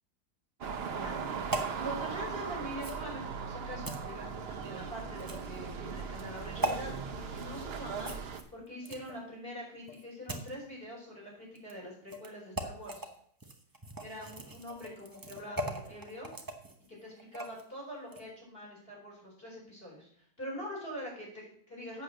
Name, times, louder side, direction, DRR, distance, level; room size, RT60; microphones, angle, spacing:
voice 1, 0.6-1.4 1.8-8.1 8.5-13.1 14.0-16.3 16.9-22.0, equal, 30° left, -2 dB, 4.7 m, -44 dB
sound 1, 0.6-8.4, right 6 dB, 45° right, 0.9 m, -39 dB
sound 2, 1.5-1.7 2.8-3.0 3.8-4.0 5.2-5.6 6.6-6.8 8.0-9.2 9.9-10.5 11.5-11.7 12.1-12.3 12.5-13.1 13.4-17.6 18.0-18.2, right 1 dB, 15° right, 0.8 m, -39 dB
8.3 x 7.1 x 6.5 m, 0.62 s
omnidirectional pair, 1.8 m